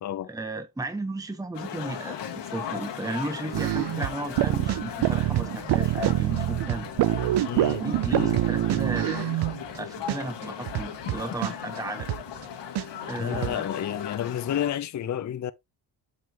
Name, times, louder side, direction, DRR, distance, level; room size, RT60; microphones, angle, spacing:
voice 1, 0.3-6.9 7.6-9.4 9.8-12.1 13.0-13.7, right 2 dB, 10° right, 1.0 m, -34 dB
sound 1, 1.5-14.7, left 9 dB, 65° left, 1.9 m, -37 dB
sound 2, 3.5-9.8 10.1-10.2 10.4-12.4 12.7-12.8 13.1-13.6, right 15 dB, 60° right, 0.6 m, -26 dB
voice 2, 7.5-8.3 13.2-15.5, left 10 dB, 40° left, 0.6 m, -31 dB
7.6 x 5.6 x 3.0 m
cardioid pair, 85°, 45 cm